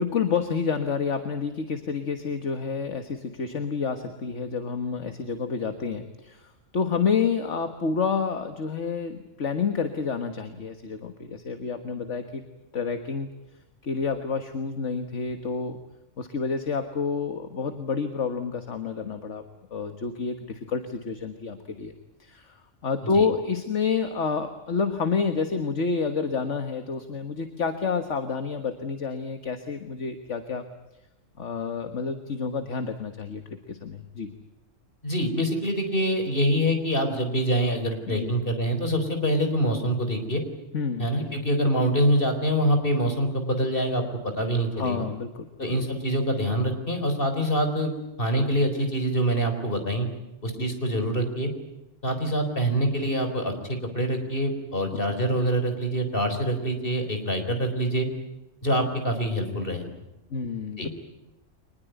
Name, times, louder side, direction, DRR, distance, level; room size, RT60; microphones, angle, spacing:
voice 1, 0.0-12.4 12.7-13.3 13.8-15.8 16.2-19.4 19.7-21.9 22.2-22.6 22.8-30.7 31.4-34.4 38.1-38.3 40.7-41.4 44.8-45.5 50.6-50.8 54.9-55.0 60.3-60.9, left 5 dB, 65° left, 8 dB, 1.9 m, -29 dB
voice 2, 35.0-40.4 41.0-44.0 44.3-45.1 45.6-47.9 48.2-50.1 50.4-51.5 52.0-58.1 58.6-59.8 60.8-60.9, equal, 40° left, 6 dB, 4.5 m, -25 dB
24.5 x 20.5 x 9.3 m, 0.94 s
omnidirectional pair, 1.4 m